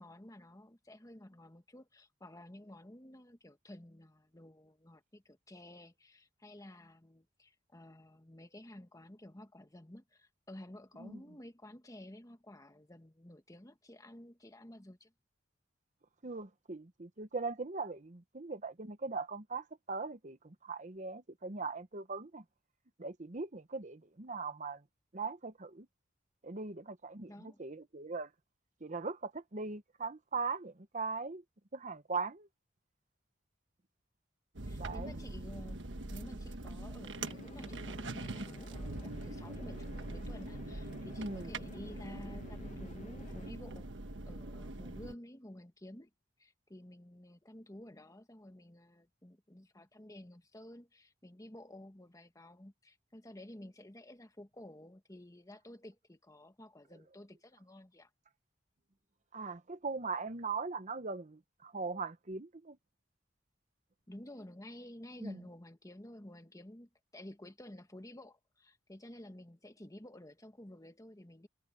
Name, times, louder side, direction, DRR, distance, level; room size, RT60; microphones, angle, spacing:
voice 1, 0.0-15.1 27.3-27.6 34.6-43.9 44.3-46.1 46.4-58.1 64.1-71.5, left 1 dB, 20° left, 1.5 m, -52 dB
voice 2, 16.2-22.4 23.0-24.8 25.1-25.9 26.4-28.3 28.8-31.4 31.7-32.5 34.8-35.1 41.2-41.5 59.3-62.8 65.2-65.4, right 4 dB, 45° right, 1.1 m, -40 dB
sound 1, 34.5-45.1, right 2 dB, 85° right, 1.4 m, -43 dB
sound 2, 37.1-43.5, left 2 dB, 40° left, 1.0 m, -53 dB
head